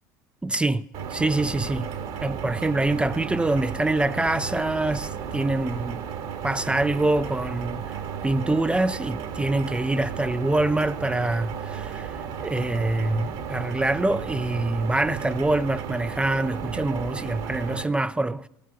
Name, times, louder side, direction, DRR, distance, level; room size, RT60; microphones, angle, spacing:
voice 1, 0.4-1.9 2.2-6.0 6.4-8.0 8.2-18.5, right 2 dB, 10° right, 0.4 m, -25 dB
sound 1, 0.9-17.8, right 7 dB, 60° right, 1.8 m, -34 dB
16.5 x 11.5 x 5.8 m
hypercardioid pair, 75°, 10 cm